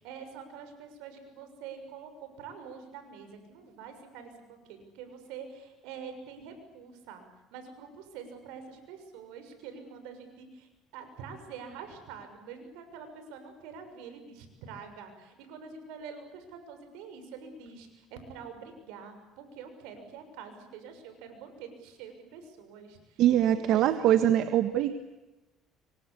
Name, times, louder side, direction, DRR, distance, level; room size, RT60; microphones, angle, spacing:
voice 1, 0.0-7.3 7.5-24.1, right 6 dB, 90° right, 8 dB, 6.7 m, -46 dB
voice 2, 23.2-25.0, right 11 dB, 65° right, 9 dB, 1.6 m, -23 dB
27.0 x 24.5 x 8.6 m, 1.0 s
cardioid pair, 115°, 0 cm